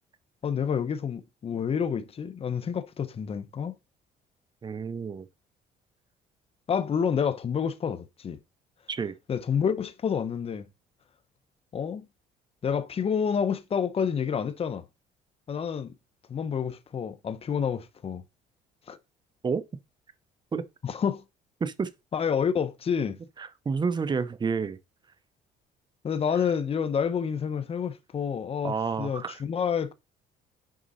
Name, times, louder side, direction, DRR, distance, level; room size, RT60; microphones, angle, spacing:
voice 1, 0.4-3.7 6.7-8.4 9.3-10.7 11.7-12.1 12.6-14.8 15.5-15.9 16.3-18.2 18.9-19.0 20.8-21.2 22.1-23.2 26.0-29.9, left 7 dB, 35° left, 0.9 m, -28 dB
voice 2, 4.6-5.2 8.9-9.2 19.4-19.6 20.5-20.6 21.6-21.9 23.4-24.8 28.6-29.4, right 5 dB, 25° right, 0.8 m, -29 dB
6.3 x 5.3 x 4.1 m
cardioid pair, 110°, 17 cm